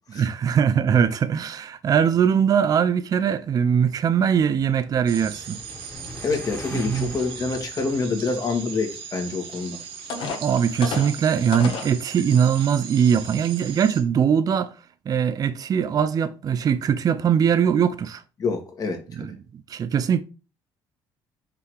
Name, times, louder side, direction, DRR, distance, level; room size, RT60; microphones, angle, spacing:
voice 1, 0.1-5.6 6.7-7.1 10.4-14.7 15.1-18.2 19.1-19.4 19.7-20.2, right 7 dB, 40° right, 0.5 m, -21 dB
sound 1, 3.7-9.0, left 1 dB, 25° left, 2.1 m, -43 dB
sound 2, 5.1-14.0, right 7 dB, 70° right, 1.4 m, -39 dB
voice 2, 6.2-9.8 18.4-19.3, left 4 dB, 40° left, 2.1 m, -27 dB
sound 3, 9.5-9.6 10.1-11.9 12.6-12.7 13.2-13.4, left 4 dB, 65° left, 1.7 m, -32 dB
5.7 x 3.9 x 4.8 m
cardioid pair, 95°, 9 cm